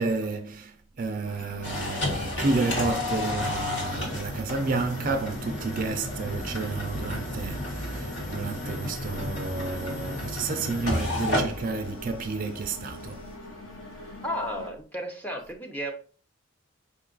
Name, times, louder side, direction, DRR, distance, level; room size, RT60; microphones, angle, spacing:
voice 1, 0.0-13.2, right 3 dB, 40° right, 0.4 m, -31 dB
sound 1, 1.2-14.7, left 2 dB, 85° left, 0.9 m, -43 dB
sound 2, 1.6-13.3, left 1 dB, 60° left, 1.4 m, -32 dB
voice 2, 14.2-15.9, equal, 10° left, 0.6 m, -33 dB
5.2 x 2.4 x 3.8 m
head